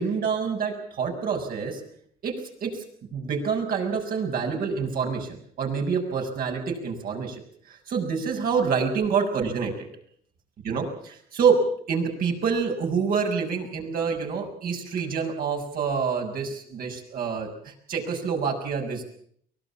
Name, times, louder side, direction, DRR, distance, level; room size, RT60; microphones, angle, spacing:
voice 1, 0.0-1.8 2.2-2.8 3.1-7.4 7.7-9.9 10.6-11.6 11.9-19.1, right 6 dB, 60° right, 2 dB, 6.6 m, -27 dB
23.5 x 20.0 x 7.3 m, 0.63 s
cardioid pair, 110°, 17 cm